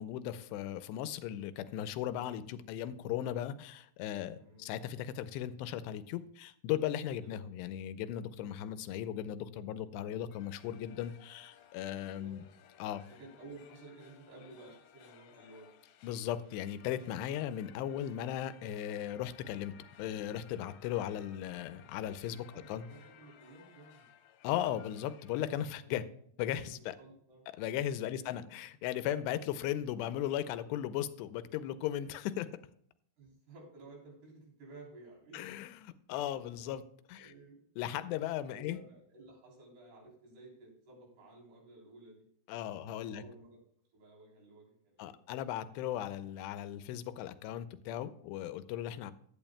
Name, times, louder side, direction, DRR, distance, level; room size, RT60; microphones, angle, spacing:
voice 1, 0.0-12.4 12.8-13.0 16.0-22.9 24.4-26.0 26.4-27.0 27.6-32.5 35.3-37.3 37.8-38.8 42.5-43.2 45.0-49.1, left 11 dB, 90° left, 12 dB, 2.8 m, -37 dB
voice 2, 4.2-4.7 7.2-7.4 11.9-12.4 13.2-15.7 17.2-17.5 22.5-24.1 25.8-26.2 26.7-27.5 28.1-28.3 32.5-32.6 33.2-35.4 37.1-37.6 38.4-42.3 43.0-43.6 43.9-45.4, right 2 dB, 70° right, -2 dB, 5.5 m, -54 dB
sound 1, 10.3-25.6, left 9 dB, 70° left, 2.4 m, -60 dB
16.0 x 11.0 x 2.2 m, 0.65 s
omnidirectional pair, 4.8 m